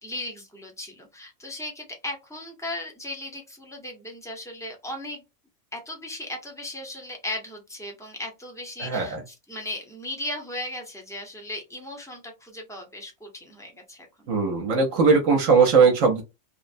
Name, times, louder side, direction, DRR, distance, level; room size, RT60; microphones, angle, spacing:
voice 1, 0.0-5.2 5.7-14.3, left 1 dB, 5° left, 2 dB, 0.4 m, -37 dB
voice 2, 8.8-9.2 14.3-16.2, right 5 dB, 70° right, 2 dB, 1.0 m, -19 dB
3.0 x 2.0 x 2.5 m, 0.25 s
omnidirectional pair, 1.4 m